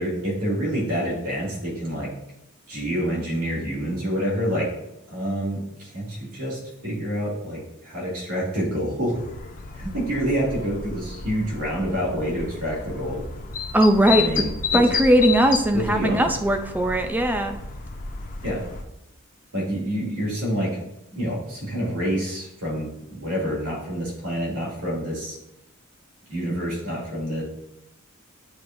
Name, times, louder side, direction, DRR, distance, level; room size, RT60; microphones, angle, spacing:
voice 1, 0.0-2.1 2.7-4.7 5.1-9.1 9.7-13.2 14.1-14.8 15.7-16.3 18.4-18.6 19.5-20.8 21.1-25.4 26.3-27.4, equal, 80° right, -5 dB, 2.5 m, -27 dB
sound 1, 9.1-18.8, left 5 dB, 40° left, 0.6 m, -32 dB
voice 2, 13.7-14.4 14.7-17.6, right 1 dB, 10° right, 6 dB, 0.4 m, -19 dB
8.6 x 4.7 x 2.6 m, 0.84 s
head